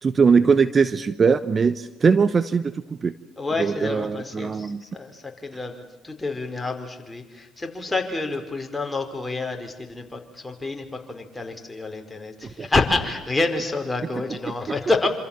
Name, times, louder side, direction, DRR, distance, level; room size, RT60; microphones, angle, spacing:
voice 1, 0.0-3.1 3.6-4.8 12.6-12.7, right 5 dB, 35° right, 14 dB, 1.0 m, -20 dB
voice 2, 3.4-15.1, left 3 dB, 15° left, 4 dB, 5.1 m, -28 dB
27.5 x 26.5 x 7.5 m, 1.1 s
hypercardioid pair, 60°, 0 cm